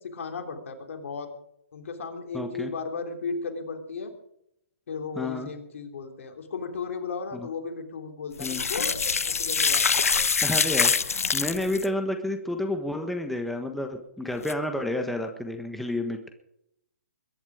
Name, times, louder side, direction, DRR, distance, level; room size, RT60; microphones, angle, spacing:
voice 1, 0.1-1.3 1.7-4.1 4.9-10.3, left 4 dB, 65° left, 5 dB, 3.4 m, -35 dB
voice 2, 2.3-2.7 5.1-5.5 7.3-7.5 8.4-8.6 10.4-16.3, left 1 dB, ahead, 5 dB, 1.3 m, -30 dB
sound 1, 8.4-11.9 14.4-14.5, left 5 dB, 85° left, 0.9 m, -24 dB
22.0 x 11.0 x 5.0 m, 0.77 s
hypercardioid pair, 140°, 8 cm